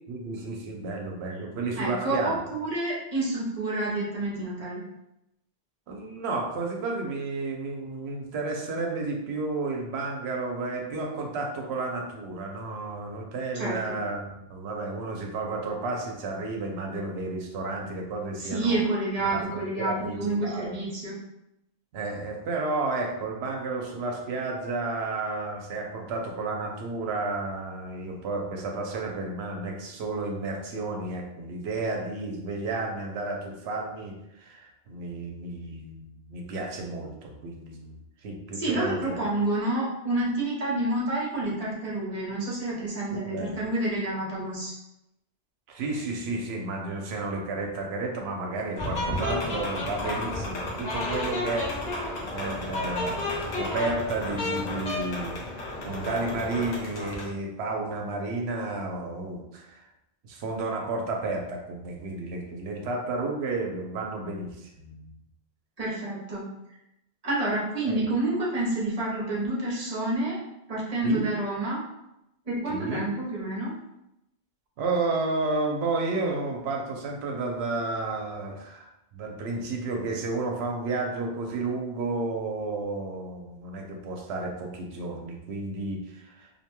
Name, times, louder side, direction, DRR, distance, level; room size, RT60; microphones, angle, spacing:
voice 1, 0.1-2.5 5.9-18.8 19.2-20.7 21.9-39.3 43.1-43.6 45.7-55.4 55.8-59.9 60.2-65.1 67.9-68.0 71.0-71.2 72.7-73.0 74.8-86.5, right 3 dB, 85° right, 1 dB, 0.8 m, -32 dB
voice 2, 1.8-4.8 13.5-14.0 18.4-21.2 38.5-44.7 65.8-66.4 67.2-70.4 70.7-71.8 72.4-73.7, right 2 dB, 40° right, -5 dB, 0.8 m, -29 dB
sound 1, 48.8-57.3, left 2 dB, 45° left, 0.7 m, -32 dB
2.6 x 2.2 x 2.9 m, 0.86 s
omnidirectional pair, 1.1 m